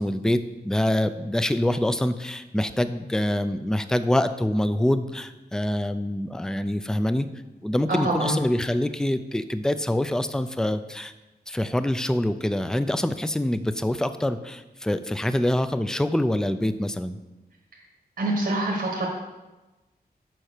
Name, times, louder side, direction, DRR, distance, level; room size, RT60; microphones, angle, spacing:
voice 1, 0.0-7.3 7.6-11.1 11.5-17.2, left 1 dB, 5° left, 11 dB, 0.4 m, -25 dB
voice 2, 7.9-8.4 18.2-19.1, right 2 dB, 70° right, -1 dB, 1.5 m, -25 dB
7.7 x 5.6 x 6.5 m, 1.1 s
wide cardioid pair, 125°, 17 cm